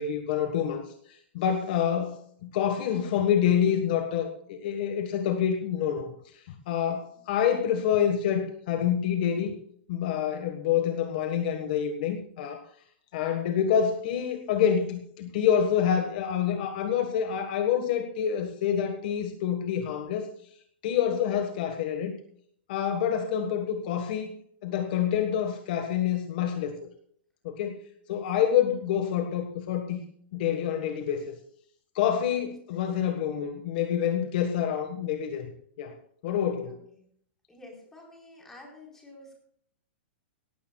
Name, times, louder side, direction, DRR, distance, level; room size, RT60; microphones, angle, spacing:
voice 1, 0.0-9.5 9.9-12.6 13.1-20.3 20.8-22.2 22.7-24.3 24.6-26.7 27.4-27.8 28.1-30.0 30.3-31.4 31.9-35.5 35.8-35.9 36.2-36.8, left 9 dB, 45° left, 6 dB, 1.5 m, -27 dB
voice 2, 36.7-37.1 37.5-39.4, left 2 dB, 5° left, -1 dB, 4.3 m, -50 dB
18.0 x 15.5 x 2.3 m, 0.64 s
supercardioid pair, 165°, 6 cm